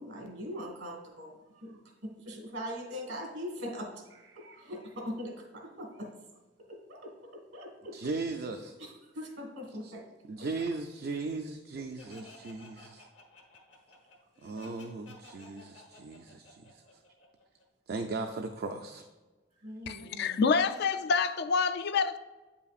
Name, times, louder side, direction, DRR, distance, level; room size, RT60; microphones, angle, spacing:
voice 1, 0.0-6.1 6.7-7.9 8.8-10.0 10.3-10.5 12.8-12.9 15.3-15.4 19.6-20.4, equal, 75° right, 1.5 m, -42 dB
voice 2, 7.9-8.7 9.8-9.9 10.3-13.1 14.4-16.8 17.9-19.1, right 3 dB, 55° right, 0.4 m, -37 dB
Laughter, 12.0-17.6, left 2 dB, 75° left, 1.1 m, -54 dB
voice 3, 19.9-22.2, left 5 dB, 60° left, 0.4 m, -27 dB
8.3 x 5.7 x 2.4 m
head